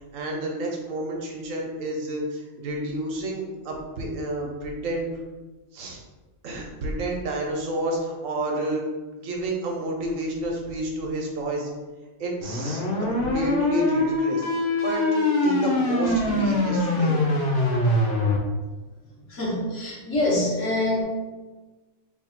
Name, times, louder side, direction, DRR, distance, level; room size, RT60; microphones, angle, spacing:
voice 1, 0.1-5.2 5.7-6.0 6.4-8.8 9.2-11.7 12.2-14.5 14.8-17.2, right 1 dB, 75° right, 0 dB, 1.2 m, -30 dB
sound 1, 12.4-18.4, left 2 dB, 55° left, 0.7 m, -23 dB
voice 2, 19.3-21.0, left 1 dB, 70° left, -4 dB, 1.4 m, -25 dB
3.3 x 2.3 x 4.2 m, 1.2 s
omnidirectional pair, 1.4 m